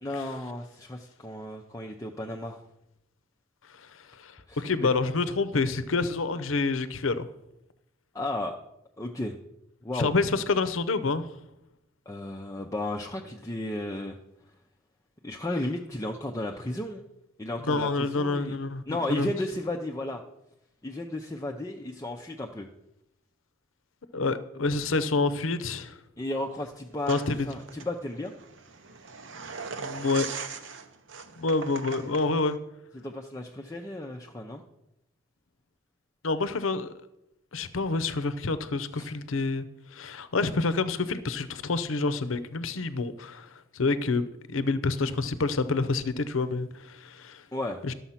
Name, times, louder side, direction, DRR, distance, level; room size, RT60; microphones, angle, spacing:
voice 1, 0.0-2.6 4.5-4.9 8.1-8.6 9.0-9.4 9.8-10.1 12.1-14.2 15.2-17.0 17.4-18.6 18.9-20.2 20.8-22.7 26.2-27.2 27.4-28.4 32.9-34.6 38.9-39.1 47.5-47.8, left 1 dB, 15° left, 1 dB, 0.6 m, -34 dB
voice 2, 3.9-7.3 9.9-11.3 17.6-19.3 24.1-26.0 27.1-27.5 29.8-30.3 31.4-32.6 36.2-36.9 37.5-39.7 39.9-47.4 47.8-47.9, left 3 dB, 80° left, 13 dB, 0.7 m, -28 dB
sound 1, 27.0-32.6, right 5 dB, 70° right, 0.9 m, -40 dB
12.5 x 7.0 x 5.7 m, 0.86 s
head